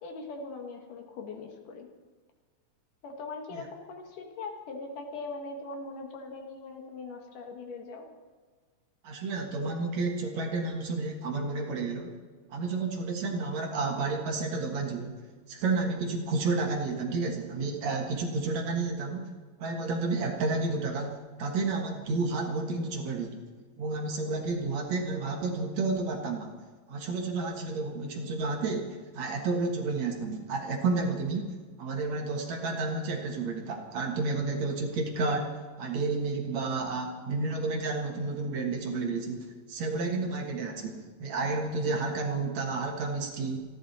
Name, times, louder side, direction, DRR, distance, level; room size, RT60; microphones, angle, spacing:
voice 1, 0.0-1.9 3.0-8.1, left 3 dB, 70° left, 3 dB, 3.2 m, -41 dB
voice 2, 9.0-12.1 12.5-15.2 15.5-19.3 19.6-23.4 23.8-26.5 26.9-31.5 31.8-35.5 35.8-43.6, right 3 dB, 60° right, 2 dB, 2.7 m, -31 dB
27.0 x 11.0 x 4.2 m, 1.5 s
omnidirectional pair, 3.9 m